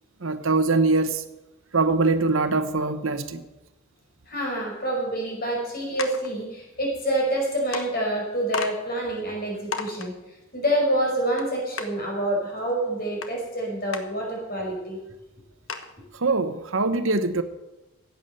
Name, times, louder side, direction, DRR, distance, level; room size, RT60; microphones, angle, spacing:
voice 1, 0.2-1.2 1.7-3.4 16.1-17.4, right 3 dB, 65° right, 0.9 m, -23 dB
voice 2, 4.3-10.1 10.5-15.0, right 1 dB, 45° left, 5.1 m, -27 dB
sound 1, 6.0-6.3 7.3-7.4 7.7-7.9 8.5-8.7 9.2-9.3 9.7-10.1 11.4-11.5 11.8-11.9 13.2-13.3 13.9-14.0 14.6-14.7 15.0-15.1 15.7-15.9, left 5 dB, 65° left, 1.2 m, -32 dB
15.0 x 9.2 x 6.7 m
head